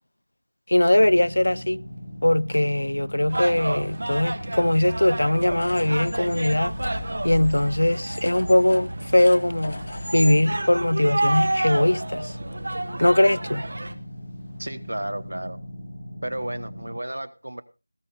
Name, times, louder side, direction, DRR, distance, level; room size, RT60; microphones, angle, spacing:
voice 1, 0.7-1.8 2.2-6.7 7.2-9.8 10.1-12.3 13.0-13.6, left 1 dB, 90° left, 0.5 m, -20 dB
sound 1, 0.9-16.9, equal, 10° left, 3.3 m, -39 dB
sound 2, 3.3-13.9, right 2 dB, 40° right, 1.3 m, -30 dB
sound 3, 5.5-10.4, left 2 dB, 30° left, 0.8 m, -37 dB
voice 2, 14.6-15.6 16.2-17.6, right 1 dB, 75° right, 1.4 m, -32 dB
18.0 x 13.5 x 2.6 m
figure-of-eight pair, 180°, 0 cm